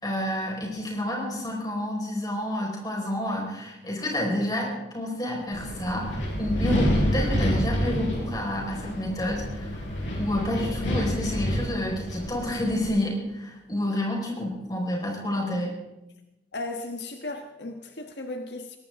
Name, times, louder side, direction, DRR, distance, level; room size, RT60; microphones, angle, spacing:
voice 1, 0.0-9.7 10.2-15.7, left 1 dB, 20° left, -1 dB, 4.8 m, -29 dB
Wind, 5.5-12.9, equal, 90° left, 6.0 m, -28 dB
voice 2, 16.5-18.8, left 2 dB, 70° left, 5 dB, 1.3 m, -35 dB
21.5 x 18.0 x 3.7 m, 0.95 s
head